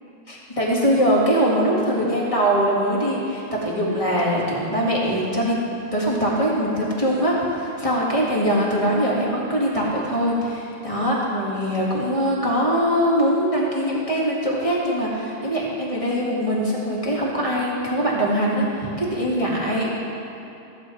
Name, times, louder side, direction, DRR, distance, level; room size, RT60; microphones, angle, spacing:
voice 1, 0.3-5.6 5.9-19.9, equal, 30° left, -5 dB, 2.1 m, -22 dB
15.0 x 7.6 x 4.6 m, 2.9 s
omnidirectional pair, 1.2 m